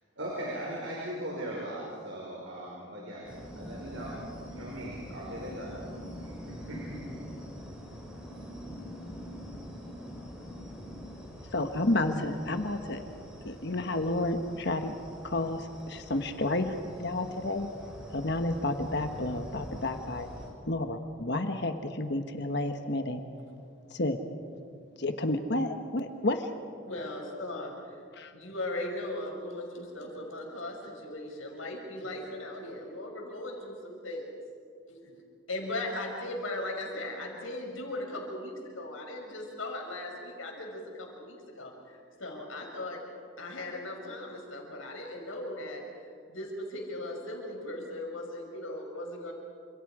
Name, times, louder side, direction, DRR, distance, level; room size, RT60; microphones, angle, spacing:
voice 1, 0.2-3.3 3.5-5.8 6.2-7.3, right 1 dB, 65° right, -3 dB, 5.0 m, -39 dB
sound 1, 3.2-20.5, equal, 5° right, 5.5 m, -44 dB
voice 2, 11.5-13.0 13.4-14.9 15.2-17.7 18.1-20.3 20.7-23.2 23.9-24.2 25.0-26.5 28.1-28.3, left 2 dB, 55° left, 6 dB, 1.3 m, -31 dB
voice 3, 26.9-27.9 28.3-34.3 34.9-35.1 35.5-43.0 43.4-45.8 46.3-49.3, left 1 dB, 80° left, 0 dB, 5.7 m, -38 dB
28.5 x 26.5 x 5.0 m, 2.2 s
head